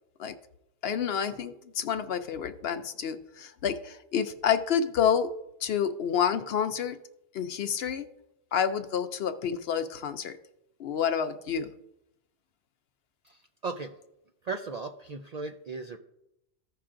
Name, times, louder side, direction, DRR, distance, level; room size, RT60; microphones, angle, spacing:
voice 1, 0.8-5.3 5.6-7.0 7.3-8.1 8.5-10.4 10.8-11.7, left 8 dB, 65° left, 9 dB, 0.7 m, -29 dB
voice 2, 13.2-13.9 14.4-16.0, right 4 dB, 70° right, 4 dB, 0.3 m, -37 dB
15.0 x 5.7 x 2.5 m, 0.85 s
omnidirectional pair, 1.2 m